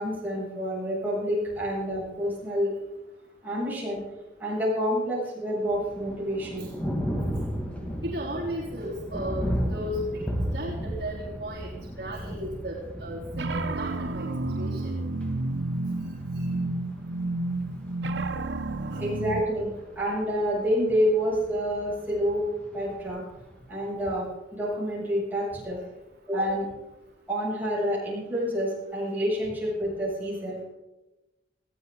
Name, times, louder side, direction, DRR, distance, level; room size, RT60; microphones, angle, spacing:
voice 1, 0.0-2.7 3.4-4.0 4.4-6.7 19.0-19.7 20.0-22.5 22.7-23.2 23.7-24.3 24.5-25.8 26.3-26.7 27.3-30.7, equal, 10° right, -7 dB, 8.0 m, -28 dB
Thunder, 5.6-23.6, equal, 10° left, 2.4 m, -36 dB
voice 2, 8.0-10.2 10.5-14.3 14.6-15.0 18.8-19.3, equal, 60° right, -8 dB, 3.9 m, -35 dB
sound 1, 13.3-19.4, right 2 dB, 85° right, 0.8 m, -30 dB
21.0 x 15.5 x 4.1 m, 1.0 s
head